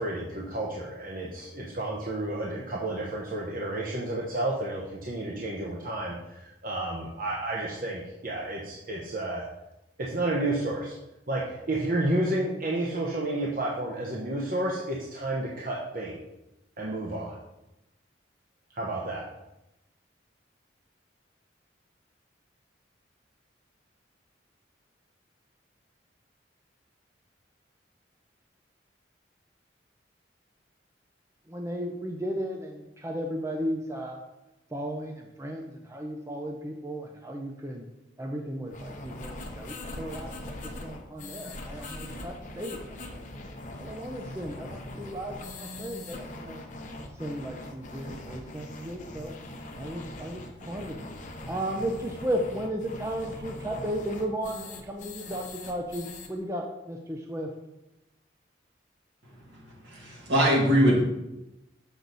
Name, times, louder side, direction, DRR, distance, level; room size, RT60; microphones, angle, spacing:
voice 1, 0.0-9.4 10.0-11.0 11.3-16.2 16.8-17.4 18.7-19.2, right 1 dB, 50° right, -3 dB, 0.9 m, -31 dB
voice 2, 31.5-34.2 34.7-37.8 38.2-43.2 43.8-46.6 47.1-49.3 49.8-51.0 51.5-57.5, equal, 15° right, 2 dB, 0.5 m, -35 dB
sound 1, 38.7-56.3, left 2 dB, 45° left, 0.9 m, -41 dB
voice 3, 59.8-61.0, equal, 70° right, -3 dB, 2.3 m, -22 dB
6.9 x 6.1 x 4.0 m, 0.92 s
head